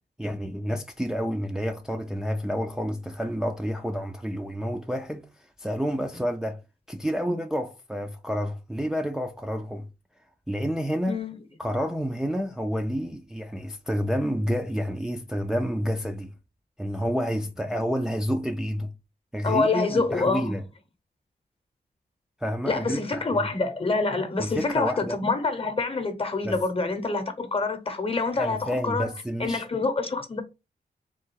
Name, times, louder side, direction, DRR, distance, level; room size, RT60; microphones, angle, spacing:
voice 1, 0.2-5.3 5.6-6.6 6.9-9.9 10.5-11.2 11.6-16.3 16.8-18.9 19.3-20.6 22.4-23.5 24.4-25.2 26.4-26.6 28.4-29.6, equal, 5° right, 0.4 m, -29 dB
voice 2, 19.4-20.5 22.7-29.1 29.4-30.4, left 3 dB, 35° left, 0.9 m, -26 dB
3.6 x 2.4 x 4.5 m
wide cardioid pair, 105°, 16 cm